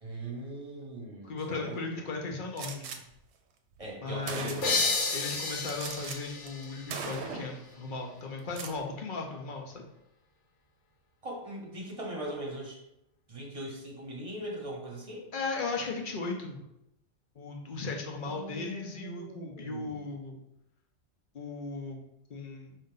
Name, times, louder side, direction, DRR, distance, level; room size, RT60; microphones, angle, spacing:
voice 1, 0.0-2.2 3.8-5.2 11.2-12.8 13.3-15.3 18.2-20.0, right 1 dB, 30° right, -2 dB, 1.1 m, -40 dB
voice 2, 1.2-3.0 4.0-9.8 15.3-16.6 17.3-20.4 21.3-22.0 22.3-22.8, left 3 dB, 50° left, 1 dB, 0.8 m, -37 dB
Gunshot gunfire, 2.6-3.0 3.8-3.9 4.3-4.9 5.7-6.2 6.5-6.6 6.9-7.6 8.4-8.8, right 5 dB, 75° right, 0.9 m, -38 dB
sound 1, 4.6-8.0, left 4 dB, 85° left, 1.1 m, -32 dB
5.1 x 2.7 x 3.8 m, 0.83 s
omnidirectional pair, 1.2 m